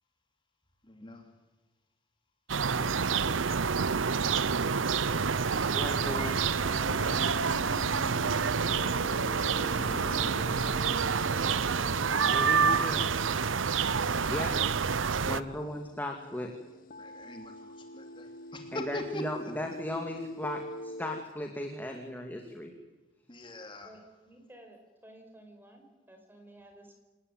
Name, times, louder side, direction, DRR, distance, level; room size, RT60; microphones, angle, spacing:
voice 1, 0.8-1.3 9.5-11.1 15.5-15.7 17.0-19.5 23.3-23.9, left 1 dB, 25° left, 4 dB, 2.9 m, -43 dB
sound 1, 2.5-15.4, right 5 dB, 85° right, 0.8 m, -28 dB
voice 2, 5.7-6.4 12.2-13.1 14.3-14.5 15.2-16.5 18.7-22.7, left 1 dB, 10° left, 3 dB, 2.3 m, -36 dB
sound 2, 6.6-21.2, left 1 dB, 45° left, 0.8 m, -45 dB
voice 3, 23.8-27.0, right 1 dB, 10° right, 4 dB, 5.4 m, -54 dB
28.0 x 19.0 x 9.5 m, 1.2 s
head